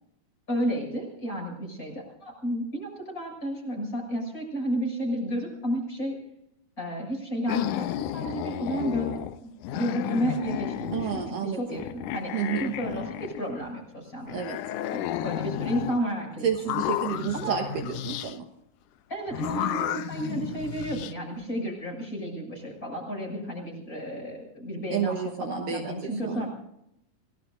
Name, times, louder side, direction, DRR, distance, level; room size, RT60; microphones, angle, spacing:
voice 1, 0.5-6.2 6.8-9.1 9.4-12.3 12.6-14.5 14.9-16.5 17.3-17.7 19.1-26.5, right 1 dB, 20° left, 0 dB, 7.1 m, -32 dB
sound 1, 7.5-9.4 9.6-11.4 11.7-13.8 14.3-16.0 16.5-18.3 19.3-21.1, left 12 dB, 85° left, 1.7 m, -32 dB
voice 2, 10.9-11.8 12.3-12.7 14.3-14.6 16.4-18.5 24.9-26.5, right 8 dB, 65° right, 3 dB, 2.6 m, -30 dB
29.0 x 18.0 x 2.6 m, 0.79 s
omnidirectional pair, 4.5 m